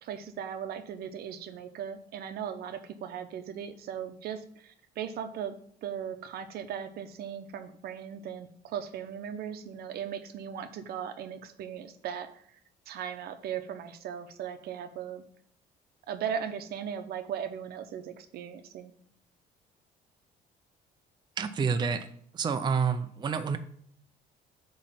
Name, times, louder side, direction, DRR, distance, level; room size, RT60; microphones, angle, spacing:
voice 1, 0.0-5.5 5.8-12.6 12.9-15.2 16.1-18.9, right 8 dB, 70° right, 9 dB, 0.8 m, -38 dB
voice 2, 21.4-22.1 22.3-23.6, right 6 dB, 25° right, 8 dB, 0.5 m, -28 dB
8.4 x 3.2 x 5.6 m, 0.64 s
cardioid pair, 110°, 17 cm